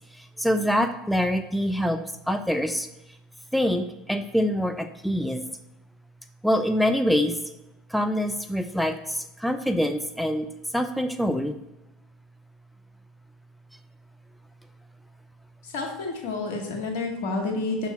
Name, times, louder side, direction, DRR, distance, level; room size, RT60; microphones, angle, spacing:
voice 1, 0.2-2.0 2.3-2.9 3.5-5.4 6.4-7.4 7.9-10.5 10.7-11.5, equal, ahead, 7 dB, 0.5 m, -25 dB
voice 2, 15.6-17.9, left 3 dB, 70° left, 1 dB, 1.6 m, -29 dB
6.9 x 3.8 x 4.4 m, 0.95 s
hypercardioid pair, 80°, 0 cm